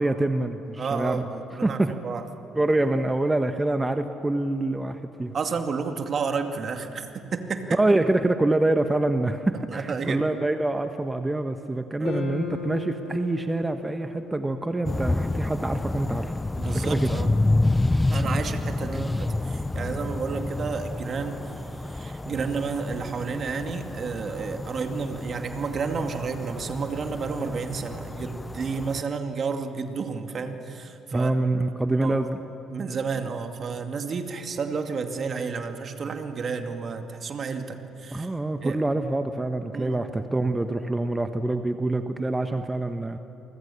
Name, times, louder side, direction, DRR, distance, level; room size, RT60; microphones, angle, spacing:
voice 1, 0.0-1.2 1.6-1.9 2.5-5.3 7.8-16.3 16.7-17.1 18.9-19.1 31.1-32.4 38.1-43.2, right 2 dB, 15° right, 8 dB, 1.3 m, -25 dB
voice 2, 0.8-2.2 5.3-7.8 9.7-10.2 12.0-12.3 16.6-17.3 18.1-31.3 32.0-32.2 32.7-38.3 38.6-38.8 39.7-40.0, right 5 dB, 45° right, 6 dB, 2.4 m, -31 dB
sound 1, 12.0-16.4, left 4 dB, 60° left, 4.6 m, -38 dB
sound 2, 14.8-29.0, left 2 dB, 15° left, 0.9 m, -29 dB
29.5 x 24.5 x 7.1 m, 2.8 s
hypercardioid pair, 50°, 0 cm